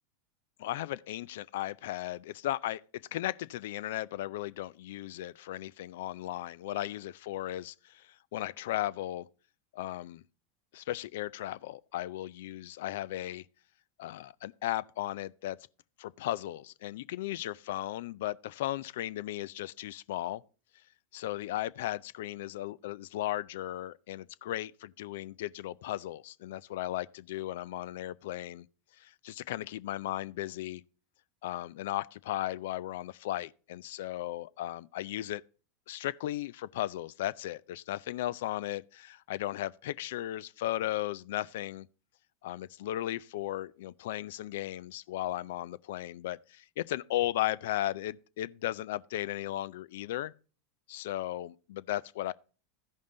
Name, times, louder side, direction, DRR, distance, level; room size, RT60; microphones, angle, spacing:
voice 1, 0.6-2.8 3.1-9.3 9.7-10.2 10.7-13.4 14.0-15.6 16.0-20.4 21.1-28.7 29.0-30.8 31.4-35.4 35.9-41.9 42.4-50.3 50.9-52.3, left 14 dB, 70° left, 0.4 m, -36 dB
14.5 x 5.3 x 3.8 m
hypercardioid pair, 100°, 0 cm